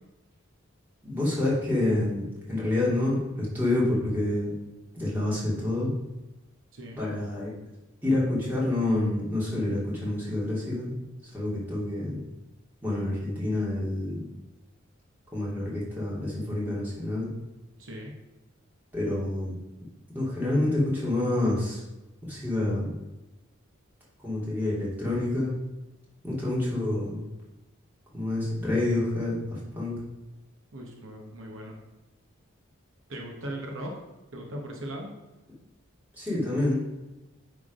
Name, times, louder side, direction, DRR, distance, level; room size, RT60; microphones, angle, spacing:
voice 1, 1.0-4.5 4.9-5.9 7.0-7.5 8.0-10.9 11.3-12.2 12.8-14.2 15.3-17.3 18.9-19.6 20.1-21.8 22.2-22.9 24.2-25.5 26.2-27.2 28.1-30.0 36.2-36.8, left 1 dB, 10° right, -7 dB, 2.5 m, -28 dB
voice 2, 6.7-7.0 17.8-18.1 30.7-31.8 33.1-33.9 34.3-35.1, right 1 dB, 65° right, 0 dB, 1.2 m, -38 dB
9.8 x 3.7 x 5.1 m, 1.0 s
head